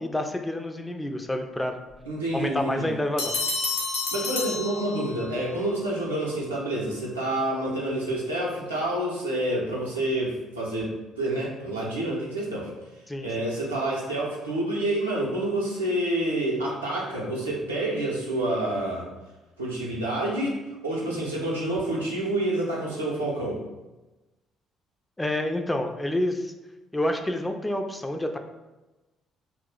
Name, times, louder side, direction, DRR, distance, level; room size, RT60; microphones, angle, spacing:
voice 1, 0.0-1.8 2.3-3.3 13.1-13.3 25.2-26.5 26.9-28.4, left 1 dB, 15° left, 5 dB, 0.3 m, -28 dB
voice 2, 2.1-2.9 4.1-12.7 13.2-19.1 19.6-23.6, right 1 dB, 90° right, -5 dB, 0.5 m, -28 dB
sound 1, 3.2-5.4, left 3 dB, 65° left, 0.6 m, -30 dB
2.3 x 2.0 x 3.7 m, 1.1 s
figure-of-eight pair, 45°, 0 cm